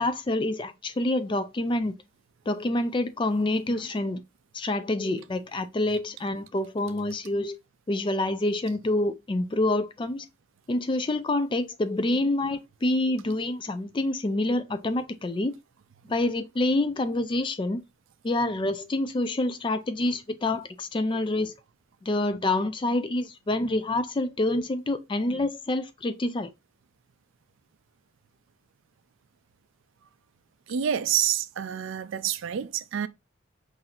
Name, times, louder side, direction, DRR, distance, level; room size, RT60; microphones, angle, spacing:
voice 1, 0.0-1.9 2.5-4.2 4.5-7.5 7.9-10.3 10.7-15.5 16.1-17.8 18.2-21.5 22.0-26.5, left 2 dB, 25° left, 0.3 m, -27 dB
voice 2, 30.7-33.1, right 9 dB, 65° right, 0.4 m, -28 dB
5.8 x 2.6 x 2.4 m
head